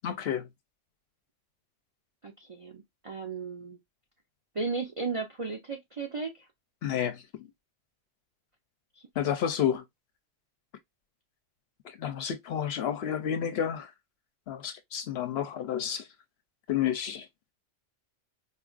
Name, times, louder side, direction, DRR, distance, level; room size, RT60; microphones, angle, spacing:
voice 1, 0.0-0.5 6.8-7.5 9.2-9.8 11.8-13.9 14.5-16.0 16.7-17.3, left 9 dB, 65° left, 0.7 m, -30 dB
voice 2, 2.2-3.8 4.5-6.5 9.2-9.3, right 4 dB, 50° right, 0.4 m, -35 dB
4.1 x 2.4 x 2.3 m
omnidirectional pair, 1.3 m